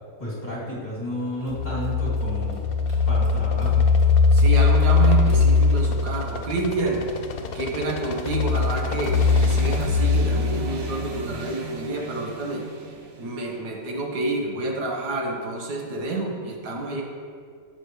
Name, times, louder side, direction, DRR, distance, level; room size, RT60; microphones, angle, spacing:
voice 1, 0.2-2.6 3.1-3.9, equal, 25° left, -7 dB, 2.6 m, -32 dB
sound 1, 1.1-9.8, left 5 dB, 60° left, 0.6 m, -36 dB
sound 2, 1.5-6.4 8.3-11.3, left 4 dB, 5° right, 2.1 m, -20 dB
voice 2, 4.3-7.1 7.5-12.6 13.2-17.0, right 2 dB, 90° right, 0 dB, 1.8 m, -28 dB
sound 3, 9.1-13.5, right 3 dB, 55° right, 1.1 m, -36 dB
13.0 x 7.7 x 3.2 m, 2.1 s
omnidirectional pair, 1.7 m